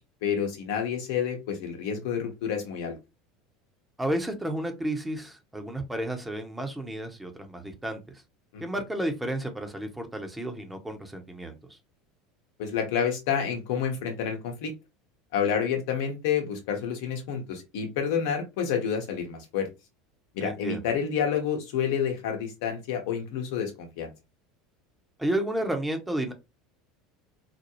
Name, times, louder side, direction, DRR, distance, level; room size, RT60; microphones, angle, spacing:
voice 1, 0.2-3.0 8.5-8.6 12.6-14.7 15.3-19.7 20.3-24.1, left 7 dB, 60° left, 1.0 m, -29 dB
voice 2, 4.0-8.2 8.6-11.8 20.4-20.8 25.2-26.3, right 1 dB, 10° right, 0.9 m, -32 dB
4.2 x 2.2 x 3.0 m
figure-of-eight pair, 70°, 0 cm